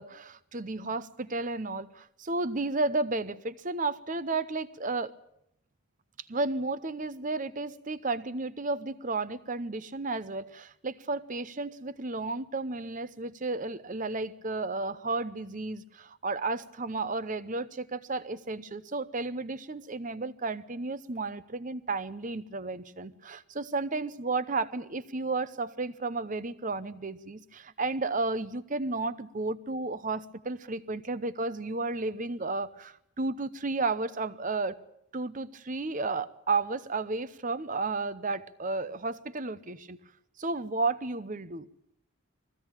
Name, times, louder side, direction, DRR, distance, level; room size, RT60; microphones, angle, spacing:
voice 1, 0.0-5.1 6.3-34.8 35.1-40.0 40.4-41.7, right 3 dB, 35° right, 0.8 m, -33 dB
21.5 x 16.0 x 8.9 m
head